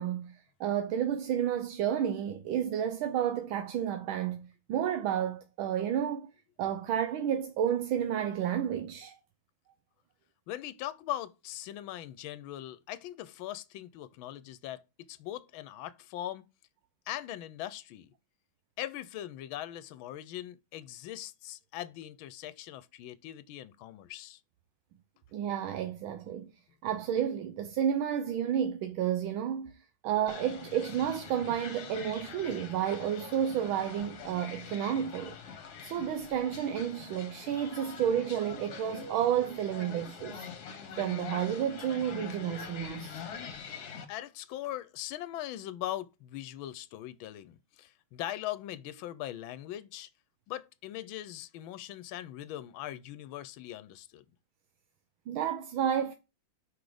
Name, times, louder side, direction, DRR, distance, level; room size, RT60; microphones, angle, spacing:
voice 1, 0.0-6.3 6.6-9.2 25.3-26.5 26.8-29.7 30.0-35.4 35.8-40.5 40.9-43.2 55.3-56.1, right 9 dB, 85° right, 1.6 m, -31 dB
voice 2, 10.5-16.4 17.1-18.1 18.8-24.4 44.1-50.1 50.5-54.2, left 13 dB, 85° left, 1.4 m, -40 dB
sound 1, 30.3-44.1, left 6 dB, 55° left, 1.6 m, -44 dB
6.1 x 5.4 x 4.9 m
omnidirectional pair, 2.2 m